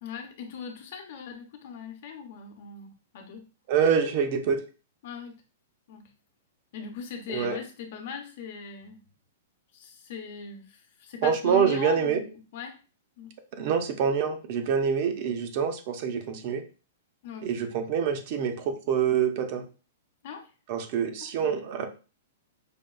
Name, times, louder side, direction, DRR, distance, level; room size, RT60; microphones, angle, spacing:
voice 1, 0.0-3.5 5.0-5.4 5.9-6.1 6.7-9.0 9.7-12.8 13.2-13.3 17.2-17.5 20.2-20.5 21.2-21.6, left 6 dB, 55° left, 4 dB, 0.8 m, -40 dB
voice 2, 3.7-4.6 7.3-7.6 11.2-12.2 13.6-16.6 17.4-19.6 20.7-21.9, right 7 dB, 45° right, 6 dB, 0.6 m, -26 dB
5.1 x 2.3 x 2.3 m, 0.33 s
hypercardioid pair, 150°, 0 cm